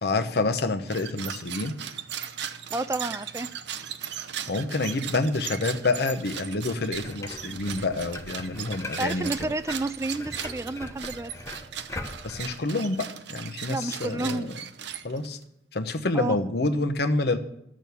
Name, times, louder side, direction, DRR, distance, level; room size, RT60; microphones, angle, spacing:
voice 1, 0.0-1.7 4.5-9.3 12.2-14.5 15.0-15.4 15.7-17.4, left 2 dB, 65° left, 8 dB, 0.9 m, -27 dB
sound 1, 0.8-15.4, right 9 dB, 80° right, 0.7 m, -38 dB
voice 2, 2.7-3.5 9.0-11.3 13.7-14.5 16.1-16.4, right 2 dB, 15° right, 12 dB, 0.3 m, -30 dB
sound 2, 6.9-12.5, left 2 dB, 15° left, 0.9 m, -41 dB
12.5 x 6.3 x 6.9 m, 0.76 s
head